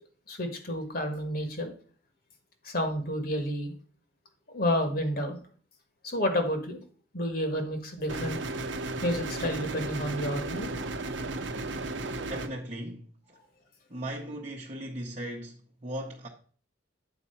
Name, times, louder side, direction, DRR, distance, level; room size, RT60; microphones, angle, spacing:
voice 1, 0.3-1.7 2.6-3.7 4.5-5.4 6.0-6.8 7.1-8.4 9.0-10.7, equal, 50° left, 1.6 m, -30 dB
sound 1, 8.1-12.5, right 2 dB, 75° right, 0.8 m, -34 dB
voice 2, 12.2-13.4 13.9-16.3, right 1 dB, 35° right, 1.0 m, -38 dB
8.7 x 4.3 x 5.6 m
head